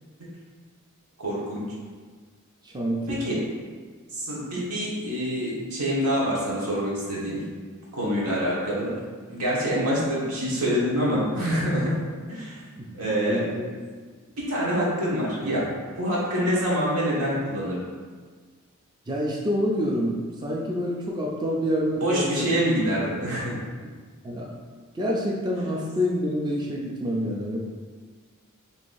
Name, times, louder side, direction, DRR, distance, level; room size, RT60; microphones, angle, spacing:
voice 1, 1.2-1.7 3.1-3.5 4.1-7.4 7.9-8.9 9.3-12.0 12.3-12.6 13.0-13.4 14.4-15.6 16.0-17.8 21.9-23.6, equal, 85° right, -6 dB, 1.4 m, -26 dB
voice 2, 2.6-3.2 4.6-4.7 12.8-12.9 13.3-13.7 19.1-22.5 23.0-23.1 24.2-24.5 24.9-27.6, equal, 20° right, -3 dB, 0.4 m, -27 dB
5.6 x 3.0 x 2.6 m, 1.5 s
head